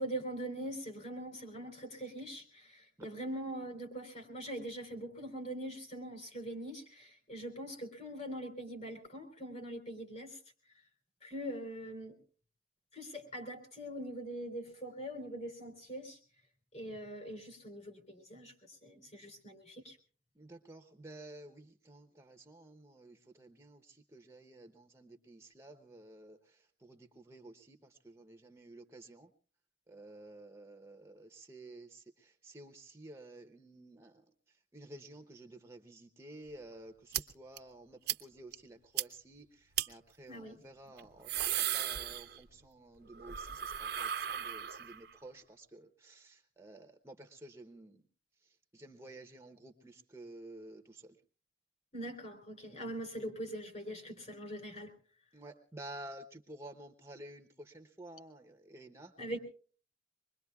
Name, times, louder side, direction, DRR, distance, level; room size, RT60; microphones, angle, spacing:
voice 1, 0.0-10.4 11.2-12.2 12.9-16.2 16.7-20.0 40.3-40.6 51.9-54.9 59.2-59.4, right 1 dB, 40° left, 5 dB, 3.8 m, -42 dB
voice 2, 20.4-29.3 29.9-34.2 34.7-48.0 48.7-51.2 55.3-59.1, right 1 dB, 15° right, 5 dB, 0.8 m, -52 dB
sound 1, 37.1-37.2 37.6-37.7 38.1-38.2 38.5-38.6 39.0-39.1 39.7-39.9 41.0-42.7 43.0-45.1, right 11 dB, 60° right, 0.7 m, -36 dB
25.0 x 21.5 x 2.3 m, 0.40 s
head